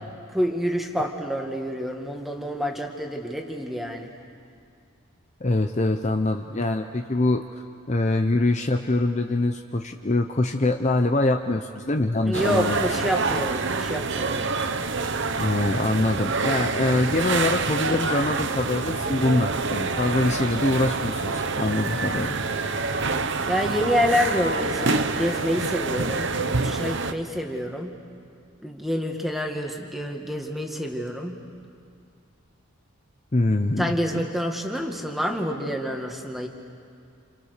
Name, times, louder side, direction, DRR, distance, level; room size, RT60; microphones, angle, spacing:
voice 1, 0.3-4.1 12.3-14.5 23.5-27.9 28.6-31.4 33.8-36.5, equal, ahead, 2 dB, 1.9 m, -27 dB
voice 2, 5.4-7.4 7.9-12.8 15.4-22.3 33.3-34.0, left 2 dB, 30° left, 5 dB, 0.7 m, -24 dB
sound 1, 12.3-27.1, right 4 dB, 55° right, 1.0 m, -27 dB
29.5 x 29.0 x 6.7 m, 2.4 s
head